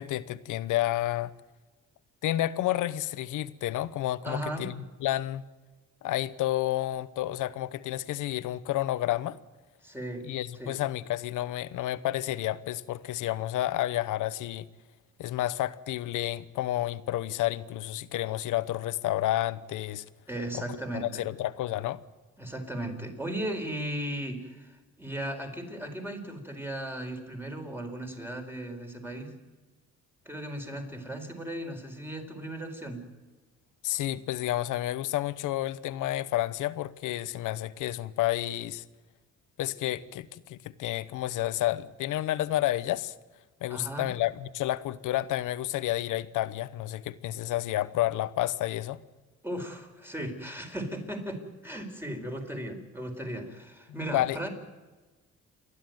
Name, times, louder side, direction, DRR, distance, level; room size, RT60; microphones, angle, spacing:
voice 1, 0.0-1.3 2.2-5.4 6.0-9.4 10.2-14.7 15.2-20.0 20.5-20.6 20.9-22.0 33.8-38.8 39.6-43.1 43.6-49.0 53.9-54.5, left 14 dB, 85° left, 15 dB, 1.0 m, -30 dB
voice 2, 4.2-4.7 9.8-10.2 10.5-10.8 20.3-21.2 22.4-29.3 30.2-33.0 43.7-44.1 49.4-54.5, right 1 dB, 5° right, 4 dB, 4.4 m, -36 dB
29.0 x 11.5 x 9.3 m, 1.3 s
cardioid pair, 90°, 30 cm